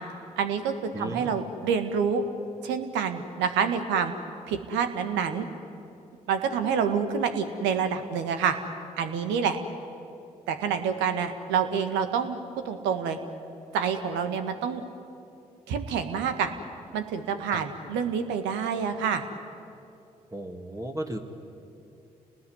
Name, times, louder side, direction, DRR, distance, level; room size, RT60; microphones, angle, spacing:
voice 1, 0.4-2.2 2.6-4.1 4.5-5.5 6.3-8.5 9.0-9.6 10.5-12.4 12.6-13.2 13.7-14.8 15.7-16.5 16.9-19.2, right 7 dB, 75° right, 8 dB, 1.8 m, -27 dB
voice 2, 0.9-1.4 17.5-17.6 20.3-21.2, right 1 dB, 15° right, 2 dB, 2.7 m, -34 dB
29.5 x 19.5 x 9.6 m, 2.7 s
hypercardioid pair, 45°, 19 cm